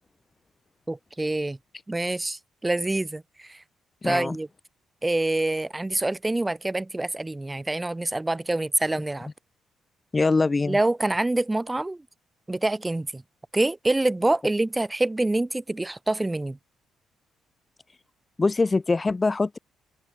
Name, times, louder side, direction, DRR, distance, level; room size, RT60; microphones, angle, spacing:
voice 1, 0.9-1.6 1.9-3.6 4.0-4.5 5.0-9.3 10.7-12.0 12.5-13.2 13.5-16.6, right 2 dB, 15° right, 1.0 m, -26 dB
voice 2, 4.0-4.4 10.1-10.8 18.4-19.6, left 3 dB, 25° left, 0.4 m, -23 dB
open air
cardioid pair, 90°, 0 cm